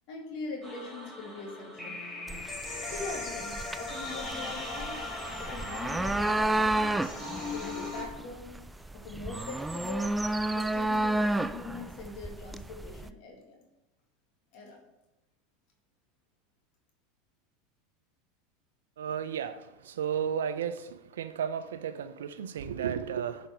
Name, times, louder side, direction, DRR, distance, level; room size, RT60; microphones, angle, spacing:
voice 1, 0.1-2.0 2.9-5.1 5.4-7.0 7.5-8.6 8.9-10.1 10.5-13.6 14.5-14.8, left 3 dB, 60° left, 1 dB, 2.0 m, -42 dB
sound 1, 0.6-8.0, left 2 dB, 15° left, 3.3 m, -39 dB
sound 2, 2.3-13.1, right 2 dB, 10° right, 0.4 m, -32 dB
voice 2, 19.0-19.5 20.0-20.8 21.2-23.4, right 8 dB, 80° right, 11 dB, 0.7 m, -33 dB
9.9 x 5.3 x 4.9 m, 0.98 s
hypercardioid pair, 90°, 0 cm